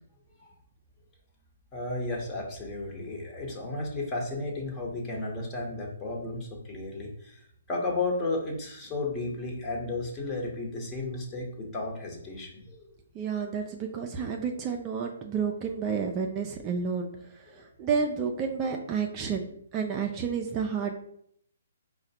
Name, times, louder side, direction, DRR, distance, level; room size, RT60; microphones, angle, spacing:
voice 1, 1.7-7.4 7.7-12.9, left 2 dB, 20° left, -1 dB, 0.9 m, -33 dB
voice 2, 13.1-20.9, right 6 dB, 25° right, 2 dB, 0.4 m, -31 dB
4.7 x 2.1 x 2.8 m, 0.68 s
figure-of-eight pair, 135°, 0 cm